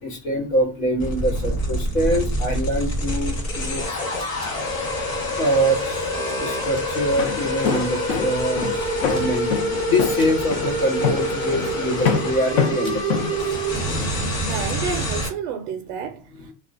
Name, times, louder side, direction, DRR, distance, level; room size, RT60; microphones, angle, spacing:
voice 1, 0.0-4.3 5.4-6.1 6.4-9.5 9.9-13.6, equal, 85° left, 1.2 m, -24 dB
sound 1, 1.0-15.3, equal, 35° left, 1.2 m, -26 dB
sound 2, 3.8-5.9 6.3-7.2 7.5-7.9 8.9-9.7 10.2-10.7 11.9-13.5 13.7-15.0, left 2 dB, 10° left, 0.6 m, -41 dB
Walk footsteps, 7.0-14.1, left 7 dB, 60° left, 0.6 m, -26 dB
voice 2, 14.5-16.5, right 7 dB, 55° right, 0.5 m, -30 dB
2.3 x 2.2 x 2.4 m
supercardioid pair, 140°, 46 cm